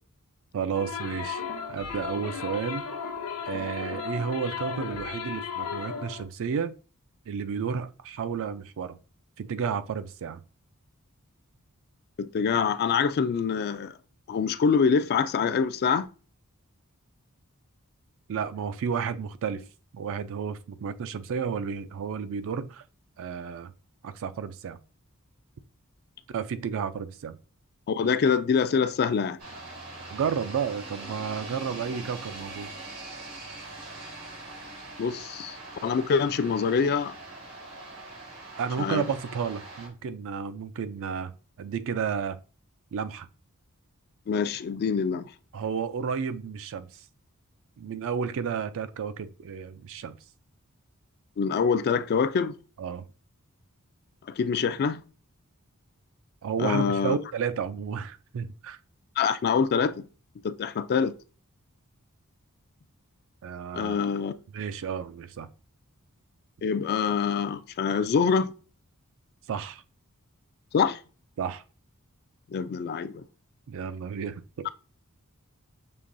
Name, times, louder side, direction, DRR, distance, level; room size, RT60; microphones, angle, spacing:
voice 1, 0.5-1.4 1.7-2.8 3.5-6.7 7.3-9.0 9.4-10.4 18.3-19.6 19.9-22.8 23.2-23.7 24.0-24.8 26.3-27.4 30.1-32.7 38.6-41.3 41.6-42.4 42.9-43.3 45.5-46.9 47.8-50.2 52.8-53.0 56.4-58.8 63.4-64.0 64.5-65.5 69.5-69.8 71.4-71.6 73.7-74.7, right 6 dB, 60° right, 0.4 m, -32 dB
sound 1, 0.7-6.2, left 6 dB, 70° left, 0.8 m, -35 dB
voice 2, 12.2-13.9 14.3-16.1 27.9-29.4 35.0-35.6 35.8-37.1 38.8-39.1 44.3-45.3 51.4-52.5 54.4-55.0 56.6-57.1 59.2-59.9 60.4-61.1 63.7-64.3 66.6-68.5 70.7-71.0 72.5-73.2, left 6 dB, 45° left, 0.3 m, -25 dB
sound 2, 29.4-39.9, right 2 dB, 85° right, 1.9 m, -42 dB
6.8 x 3.0 x 2.5 m
head